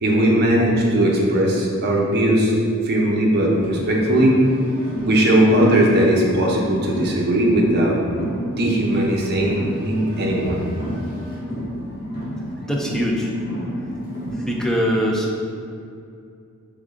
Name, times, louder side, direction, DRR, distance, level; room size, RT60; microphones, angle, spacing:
voice 1, 0.0-2.5 2.8-4.4 5.0-8.0 8.6-10.6, right 1 dB, 45° right, -2 dB, 0.7 m, -18 dB
Car, 3.5-14.6, equal, 45° left, 1.3 m, -31 dB
voice 2, 12.6-13.3 14.3-15.3, equal, ahead, -2 dB, 0.3 m, -22 dB
3.5 x 3.5 x 3.6 m, 2.4 s
head